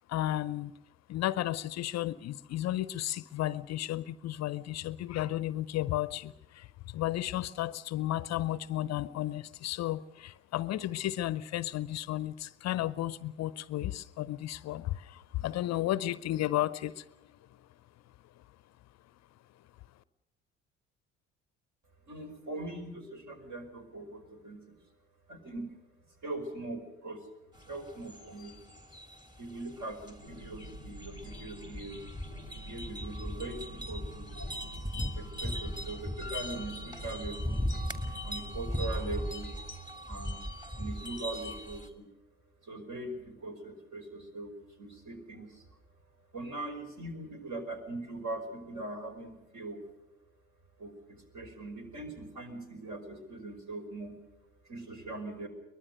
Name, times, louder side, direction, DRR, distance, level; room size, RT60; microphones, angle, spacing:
voice 1, 0.1-0.7 1.1-17.1, left 14 dB, 45° left, 0.7 m, -33 dB
voice 2, 22.1-24.8 25.3-25.7 26.2-27.3 27.6-28.6 29.4-32.0 32.7-34.5 35.1-37.6 38.1-39.8 40.1-40.4 40.7-42.1 42.6-45.7 46.3-49.8 50.8-54.2 54.6-55.5, right 2 dB, 50° right, 5.2 m, -41 dB
sound 1, 27.6-41.9, left 1 dB, 10° right, 2.6 m, -38 dB
sound 2, 30.2-39.6, right 1 dB, 85° right, 5.4 m, -47 dB
23.0 x 21.0 x 6.6 m
figure-of-eight pair, 50°, 37 cm